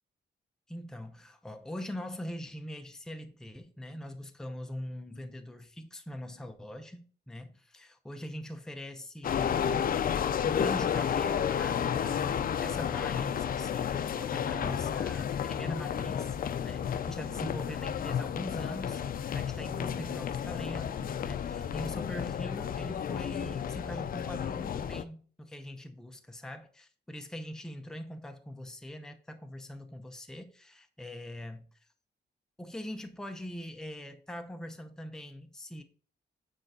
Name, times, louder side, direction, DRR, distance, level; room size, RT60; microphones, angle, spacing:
voice 1, 0.7-31.6 32.6-35.8, equal, 5° left, 0.7 m, -42 dB
sound 1, 9.2-25.0, left 8 dB, 50° left, 0.5 m, -32 dB
9.0 x 4.5 x 4.1 m
wide cardioid pair, 130°, 18 cm